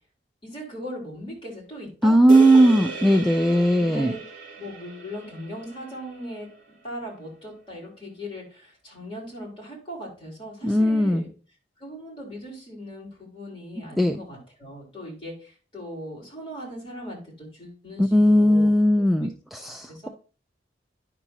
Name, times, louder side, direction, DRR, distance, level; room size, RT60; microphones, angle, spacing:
voice 1, 0.4-4.2 4.6-6.5 6.8-11.3 11.8-19.3 19.9-20.1, equal, 30° left, -4 dB, 3.6 m, -39 dB
voice 2, 2.0-4.1 10.6-11.3 14.0-14.2 18.0-20.1, right 1 dB, ahead, 5 dB, 0.3 m, -18 dB
sound 1, 2.3-6.8, right 2 dB, 50° right, 1.9 m, -37 dB
9.8 x 5.9 x 2.7 m, 0.36 s
head